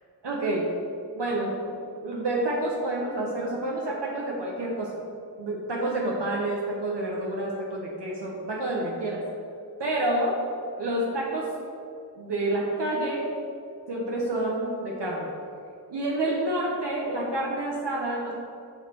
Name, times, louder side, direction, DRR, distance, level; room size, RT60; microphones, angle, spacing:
voice 1, 0.2-0.7 1.2-1.7 2.0-5.0 5.4-9.3 9.8-10.4 10.8-11.5 12.2-13.3 13.9-15.3 15.9-18.3, right 1 dB, 85° right, -3 dB, 0.9 m, -28 dB
6.1 x 4.5 x 4.4 m, 2.6 s
wide cardioid pair, 70°, 41 cm